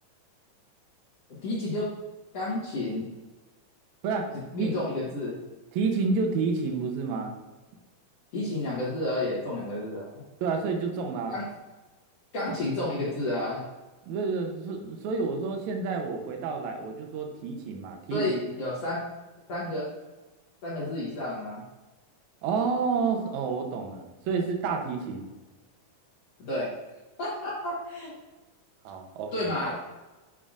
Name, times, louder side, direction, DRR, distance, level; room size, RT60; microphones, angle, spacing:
voice 1, 1.4-1.9 2.3-3.1 4.5-5.4 8.3-10.1 11.3-11.5 12.3-13.6 18.1-19.1 19.5-19.9 20.6-21.6 26.4-26.7 27.2-28.1 29.3-29.8, left 1 dB, 60° left, -7 dB, 2.1 m, -31 dB
voice 2, 5.7-7.3 10.4-11.4 14.1-18.4 22.4-25.3 28.8-29.5, right 4 dB, 75° right, 3 dB, 2.0 m, -29 dB
7.3 x 5.6 x 2.4 m, 1.2 s
omnidirectional pair, 3.7 m